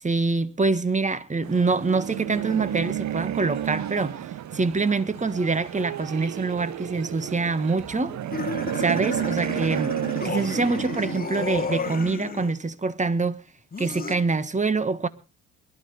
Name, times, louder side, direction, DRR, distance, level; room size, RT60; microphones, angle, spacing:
voice 1, 0.0-4.2 4.5-8.2 8.7-10.0 10.2-13.4 13.8-15.1, right 3 dB, 20° right, 1.6 m, -25 dB
sound 1, 1.4-12.1, right 11 dB, 55° right, 0.9 m, -32 dB
sound 2, 8.3-12.5 13.7-14.2, left 4 dB, 25° left, 1.5 m, -32 dB
22.5 x 12.5 x 3.3 m
hypercardioid pair, 60°, 35 cm